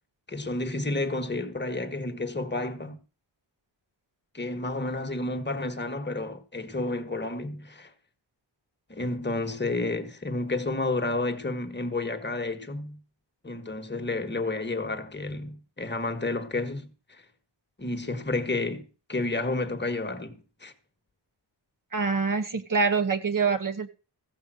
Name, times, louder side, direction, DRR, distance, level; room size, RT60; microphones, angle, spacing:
voice 1, 0.3-3.0 4.3-7.9 8.9-13.0 13.4-17.2 17.8-20.7, left 2 dB, 25° left, 1.5 m, -31 dB
voice 2, 21.9-23.9, right 5 dB, 45° right, 1.2 m, -25 dB
15.5 x 5.4 x 7.7 m
wide cardioid pair, 145°, 45 cm